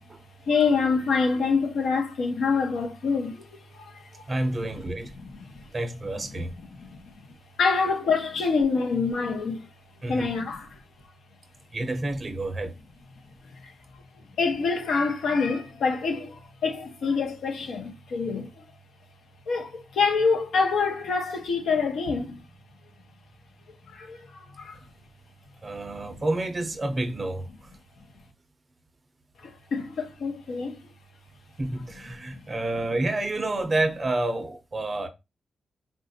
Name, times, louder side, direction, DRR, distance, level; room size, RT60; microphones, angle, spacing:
voice 1, 0.5-4.2 5.2-5.7 6.2-6.4 6.7-7.1 7.6-9.7 10.1-10.8 13.6-13.7 14.4-18.6 19.5-22.4 23.9-24.8 29.4-30.8 32.3-32.4, left 4 dB, 75° left, 0.8 m, -26 dB
voice 2, 4.3-5.1 5.7-6.5 10.0-10.3 11.7-12.7 25.6-27.7 31.6-35.1, right 2 dB, 25° right, 0.5 m, -29 dB
3.9 x 2.3 x 2.6 m
wide cardioid pair, 170°, 0 cm